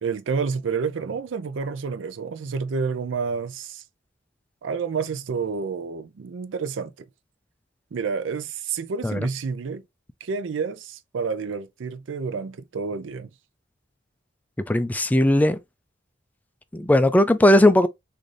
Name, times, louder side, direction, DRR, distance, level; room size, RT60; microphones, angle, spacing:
voice 1, 0.0-3.8 4.6-7.1 7.9-9.8 10.2-13.3, right 5 dB, 85° right, 0.4 m, -29 dB
voice 2, 14.7-15.6 16.7-17.9, left 1 dB, 10° left, 0.3 m, -17 dB
3.8 x 2.6 x 3.2 m
head